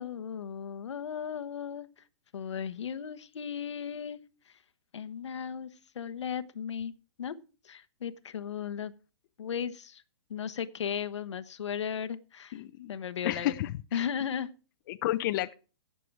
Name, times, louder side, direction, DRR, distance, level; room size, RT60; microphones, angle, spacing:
voice 1, 0.0-2.0 2.3-4.2 4.5-4.6 4.9-5.7 5.9-6.9 7.2-7.4 7.6-8.9 9.4-10.0 10.3-12.6 12.9-13.5 13.9-14.5, left 8 dB, 85° left, 12 dB, 1.1 m, -36 dB
voice 2, 12.5-12.9 13.2-14.1 14.9-15.5, left 15 dB, 45° left, 10 dB, 0.7 m, -31 dB
16.5 x 6.8 x 4.6 m, 0.34 s
hypercardioid pair, 145°, 15 cm